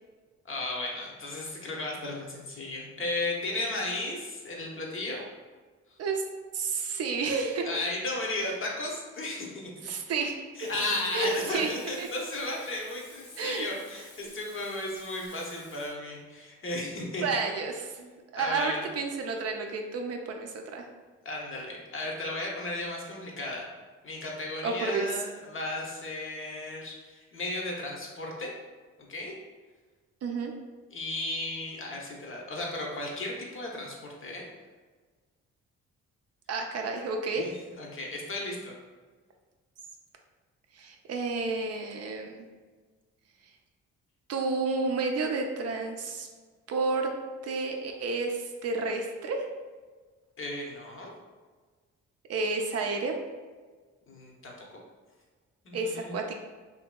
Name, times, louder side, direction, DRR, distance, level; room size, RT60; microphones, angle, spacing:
voice 1, 0.4-5.3 7.6-9.9 10.6-17.2 18.0-18.1 18.4-18.9 21.2-23.7 24.0-28.5 29.1-29.3 30.9-34.5 37.3-38.7 50.4-51.1 54.1-54.8 55.6-56.2, left 2 dB, 40° left, -1 dB, 0.8 m, -35 dB
voice 2, 6.5-7.7 9.8-10.3 11.1-11.7 12.0-12.1 13.4-13.7 17.2-18.0 18.3-20.8 24.6-25.1 30.2-30.5 36.5-37.5 40.8-42.5 44.3-46.3 46.7-47.1 47.4-49.5 52.3-53.2 55.7-56.4, right 4 dB, 50° right, 3 dB, 0.4 m, -30 dB
Frying (food), 10.6-15.9, left 2 dB, 80° left, 1.1 m, -52 dB
2.7 x 2.6 x 2.2 m, 1.4 s
supercardioid pair, 55°, 32 cm